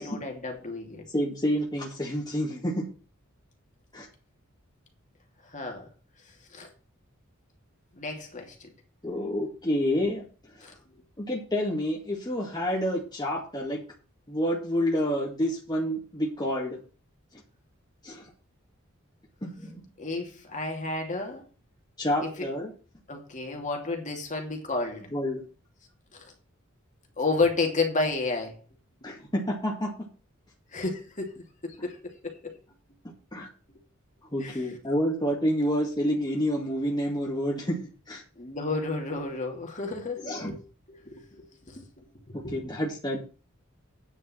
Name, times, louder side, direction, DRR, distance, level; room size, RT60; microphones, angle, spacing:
voice 1, 0.0-1.0 5.5-5.9 6.5-6.7 7.9-8.7 10.6-10.7 20.0-21.5 22.2-22.5 23.1-25.1 26.1-26.3 27.2-28.6 30.7-32.5 34.4-34.6 38.4-40.6 40.9-41.9 42.3-42.6, left 3 dB, 35° left, 2.7 m, -32 dB
voice 2, 1.1-2.9 3.9-4.1 9.0-10.2 10.5-10.7 11.2-13.8 14.3-16.8 18.0-18.3 19.4-19.8 22.0-22.7 25.1-25.4 29.0-29.9 33.3-33.5 34.3-37.8 38.1-38.2 40.3-40.5 42.3-43.2, equal, 20° left, 2.2 m, -28 dB
9.6 x 5.5 x 7.6 m
head